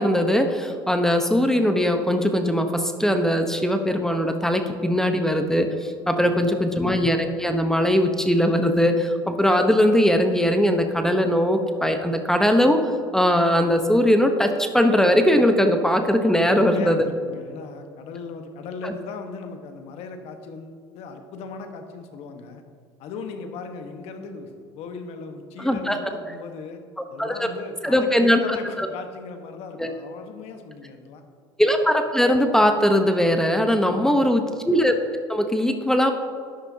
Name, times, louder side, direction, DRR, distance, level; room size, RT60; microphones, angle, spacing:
voice 1, 0.0-17.1 18.8-18.9 25.6-26.0 27.2-27.5 27.8-28.9 29.8-29.9 31.6-34.9 35.3-36.1, equal, 5° left, 6 dB, 0.9 m, -20 dB
voice 2, 6.2-6.5 16.4-22.6 23.0-24.5 24.7-26.8 27.1-31.2 33.9-34.4, left 4 dB, 65° left, 6 dB, 1.3 m, -38 dB
13.0 x 10.0 x 2.8 m, 2.1 s
supercardioid pair, 85°, 11 cm